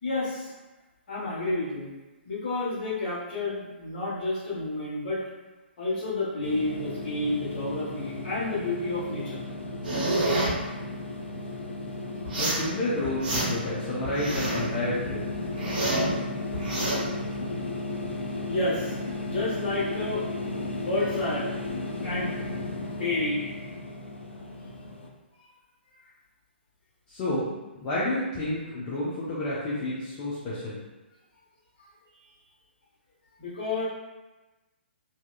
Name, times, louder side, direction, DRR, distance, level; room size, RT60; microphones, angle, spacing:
voice 1, 0.0-0.5 1.1-1.9 2.2-5.2 5.8-9.4 9.9-10.0 12.4-12.5 16.5-16.6 18.5-19.0 19.2-20.2 20.7-21.6 22.0-22.3 22.8-23.5 32.1-32.3 33.4-33.9, left 2 dB, 50° left, -8 dB, 1.3 m, -30 dB
sound 1, 6.4-25.1, left 2 dB, 85° left, 0.4 m, -35 dB
sound 2, 9.8-10.5 12.3-12.7 13.0-13.7 14.0-14.7 15.1-16.1 16.5-17.0, right 2 dB, 50° right, 0.9 m, -28 dB
voice 2, 12.4-15.2 27.1-27.5 27.8-30.8, left 1 dB, 30° left, -8 dB, 0.5 m, -30 dB
2.7 x 2.2 x 2.3 m, 1.1 s
figure-of-eight pair, 125°, 6 cm